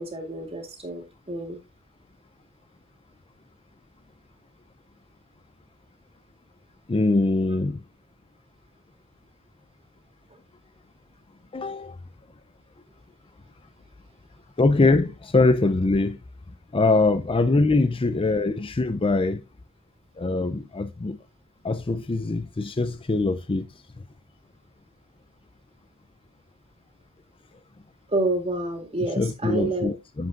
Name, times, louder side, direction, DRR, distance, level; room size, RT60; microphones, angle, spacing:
voice 1, 0.0-1.6 28.1-29.9, right 2 dB, 25° right, 2.3 m, -28 dB
voice 2, 6.9-7.8 11.5-12.0 14.6-16.2 16.7-19.4 20.2-21.2 21.6-23.7 29.2-30.3, left 3 dB, 25° left, 0.5 m, -23 dB
10.5 x 7.8 x 2.5 m
head